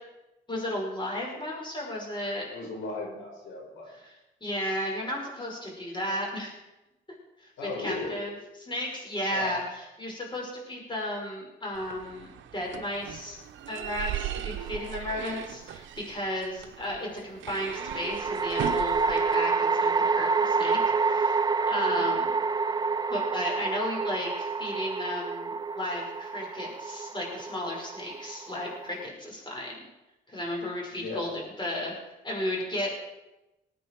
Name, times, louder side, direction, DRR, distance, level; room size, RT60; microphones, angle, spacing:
voice 1, 0.5-2.5 4.0-4.1 4.4-6.6 7.4-8.3 8.6-13.4 13.7-22.3 23.1-29.8 30.3-31.9 32.2-33.1, left 1 dB, 25° left, -2 dB, 5.6 m, -34 dB
voice 2, 2.5-3.9 7.6-8.2 9.3-9.6 21.9-22.1 30.9-31.4, left 2 dB, 80° left, -1 dB, 4.9 m, -36 dB
sound 1, 11.7-19.3, right 11 dB, 70° right, 0.9 m, -38 dB
sound 2, 14.6-15.3 17.7-29.1, right 4 dB, 20° right, 0.4 m, -28 dB
20.0 x 9.1 x 4.6 m, 0.97 s
cardioid pair, 90°, 20 cm